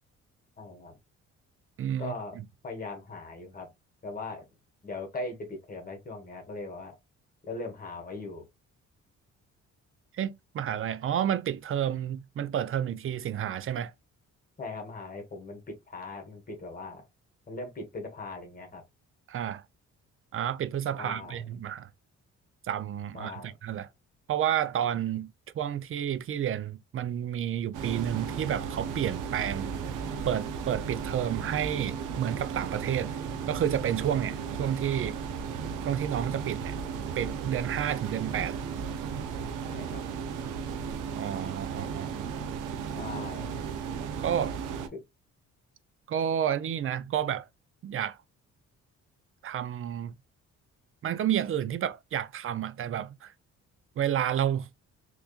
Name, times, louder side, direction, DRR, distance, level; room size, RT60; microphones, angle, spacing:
voice 1, 0.6-1.0 2.0-2.4 2.6-3.7 4.0-4.5 4.8-7.0 7.4-8.5 14.6-17.1 17.5-18.8 20.9-21.4 23.1-23.5 37.9-38.0 39.7-40.0 43.0-43.6 44.9-45.0, left 3 dB, 30° left, 1.5 m, -39 dB
voice 2, 1.8-2.1 10.1-13.9 19.3-19.6 20.3-21.9 22.6-23.9 24.3-29.7 30.2-33.1 33.5-35.2 35.8-36.7 37.2-38.6 41.2-42.1 44.2-44.6 46.1-47.5 47.8-48.2 49.4-50.1 51.0-53.3 54.0-54.7, right 10 dB, 45° right, 0.5 m, -30 dB
sound 1, 27.7-44.9, right 6 dB, 90° right, 0.7 m, -35 dB
3.4 x 3.1 x 2.4 m
cardioid pair, 90°, 30 cm